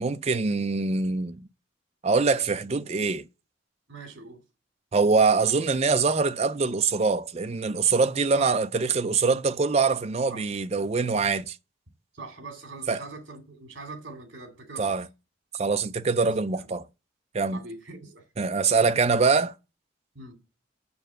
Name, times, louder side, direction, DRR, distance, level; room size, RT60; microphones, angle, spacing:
voice 1, 0.0-1.5 2.0-3.3 4.9-11.6 12.9-13.0 14.8-15.1 15.5-16.8 17.3-17.6 18.4-19.5, right 4 dB, 30° right, 0.4 m, -24 dB
voice 2, 3.9-4.4 8.3-8.5 10.3-10.5 12.1-15.0 16.2-16.7 17.5-18.2 20.1-20.4, right 3 dB, 60° right, 2.5 m, -42 dB
7.0 x 6.5 x 7.5 m
head